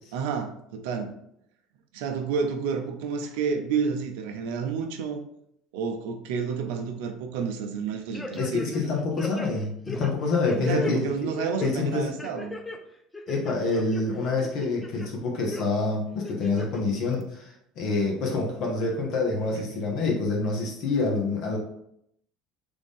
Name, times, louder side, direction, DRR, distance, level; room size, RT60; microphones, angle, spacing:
voice 1, 0.1-1.1 1.9-5.3 5.7-8.6 10.6-12.6 19.5-19.8, right 6 dB, 75° right, 6 dB, 0.5 m, -30 dB
sound 1, 8.1-8.9 9.2-10.9 11.4-11.7 12.2-12.8 13.1-14.0 14.4-15.1 15.5-15.6 16.2-16.8 17.2-17.3, left 2 dB, 15° left, 0.5 m, -36 dB
voice 2, 8.4-11.1 11.6-12.1 13.3-21.6, left 3 dB, 60° left, -1 dB, 0.9 m, -27 dB
3.4 x 2.5 x 3.5 m, 0.74 s
hypercardioid pair, 80°, 0 cm